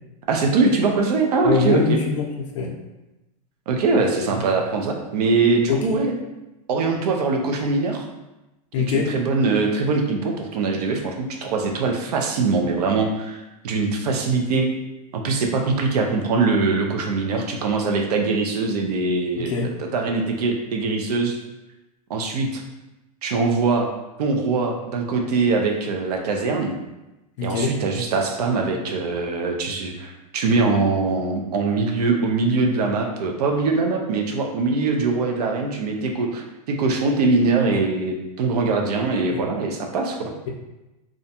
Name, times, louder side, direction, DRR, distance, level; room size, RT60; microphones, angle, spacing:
voice 1, 0.3-2.0 3.7-6.1 6.7-8.0 8.9-14.7 15.1-19.5 19.8-21.4 22.1-22.6 23.2-23.9 24.2-26.7 27.4-40.3, right 3 dB, 80° right, 2 dB, 0.5 m, -22 dB
voice 2, 1.4-2.7 5.7-6.0 8.7-9.1 19.3-19.7 27.4-27.7 37.7-37.8 39.3-39.4, left 5 dB, 50° left, 1 dB, 0.5 m, -23 dB
2.4 x 2.1 x 2.7 m, 0.99 s
supercardioid pair, 175°, 20 cm